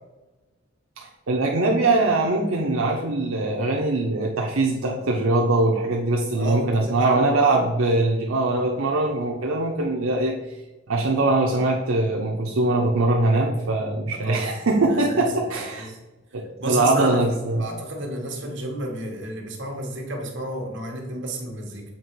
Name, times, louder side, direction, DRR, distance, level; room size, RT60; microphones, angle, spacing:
voice 1, 1.0-10.4 10.9-15.9 16.3-17.7, right 2 dB, 85° right, -1 dB, 0.7 m, -22 dB
voice 2, 6.3-7.6 14.1-14.5 14.9-15.2 15.8-16.0 16.6-17.3 17.6-21.8, right 1 dB, 60° right, 1 dB, 1.3 m, -31 dB
7.4 x 2.9 x 4.5 m, 1.1 s
head